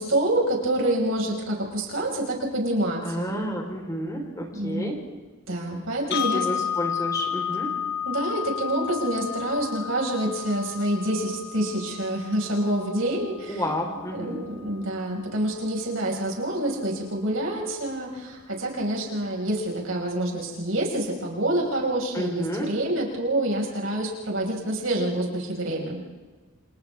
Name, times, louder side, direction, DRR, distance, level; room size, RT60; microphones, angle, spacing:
voice 1, 0.0-3.4 4.5-5.0 5.5-6.5 8.0-13.7 14.1-26.0, right 1 dB, 80° right, -1 dB, 5.8 m, -27 dB
voice 2, 3.0-5.0 6.1-7.7 13.5-14.4 22.1-22.7, equal, 15° left, 1 dB, 4.3 m, -31 dB
sound 1, 6.1-14.1, left 9 dB, 55° left, 1.4 m, -32 dB
29.5 x 28.0 x 3.7 m, 1.3 s
head